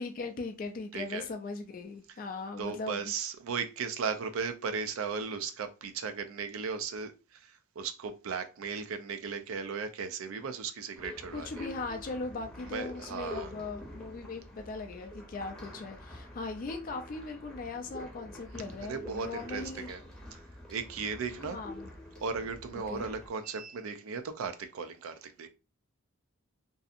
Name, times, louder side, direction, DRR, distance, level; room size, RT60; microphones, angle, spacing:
voice 1, 0.0-3.1 11.3-19.9 21.4-21.9 22.7-23.1, left 3 dB, 40° left, 0.3 m, -39 dB
voice 2, 0.9-1.3 2.6-11.7 12.6-13.5 18.8-20.0 20.3-20.4 20.7-21.6 22.2-25.5, right 5 dB, 75° right, 0.4 m, -36 dB
sound 1, 11.0-23.3, left 1 dB, 5° left, 0.7 m, -46 dB
2.7 x 2.4 x 2.4 m
head